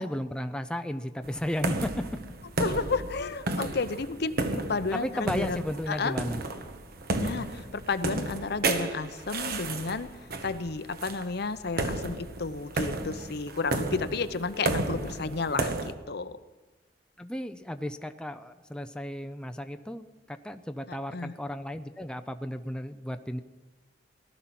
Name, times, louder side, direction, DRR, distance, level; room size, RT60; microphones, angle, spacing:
voice 1, 0.0-2.0 4.9-6.4 13.9-14.0 14.6-15.7 17.2-23.4, left 1 dB, 5° left, 8 dB, 0.5 m, -34 dB
sound 1, 1.2-15.9, right 2 dB, 55° right, 1.3 m, -33 dB
voice 2, 2.6-6.1 7.2-10.1 10.4-16.4 20.9-21.3, left 4 dB, 60° left, 12 dB, 0.8 m, -32 dB
18.0 x 12.5 x 5.9 m, 1.2 s
head